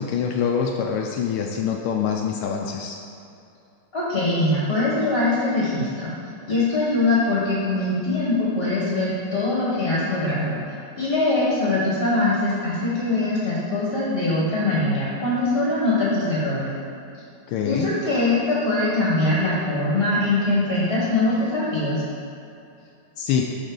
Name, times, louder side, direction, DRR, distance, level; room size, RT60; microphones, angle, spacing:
voice 1, 0.0-3.0 17.5-17.9 23.2-23.5, left 7 dB, 80° left, 1 dB, 1.4 m, -25 dB
voice 2, 3.9-6.1 6.5-10.6 11.0-16.7 17.6-22.0, left 2 dB, 35° left, -7 dB, 1.2 m, -22 dB
11.5 x 3.9 x 3.8 m, 2.7 s
omnidirectional pair, 2.4 m